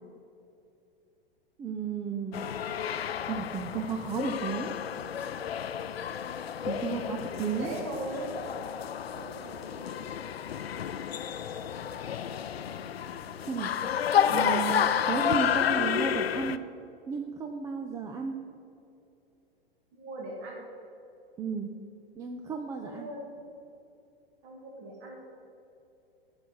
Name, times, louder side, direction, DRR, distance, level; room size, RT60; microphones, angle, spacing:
voice 1, 1.6-2.5 3.3-4.7 6.6-7.8 13.4-13.7 14.3-16.6 17.1-18.4 21.4-21.7 22.2-23.1, right 5 dB, 10° right, 4 dB, 0.3 m, -33 dB
sound 1, 2.3-16.6, left 9 dB, 80° left, 0.5 m, -31 dB
voice 2, 7.6-8.4 9.2-9.9 19.9-20.7 22.8-23.2 24.4-25.3, right 1 dB, 40° right, -1 dB, 1.9 m, -39 dB
13.0 x 5.5 x 6.3 m, 2.8 s
figure-of-eight pair, 100°, 31 cm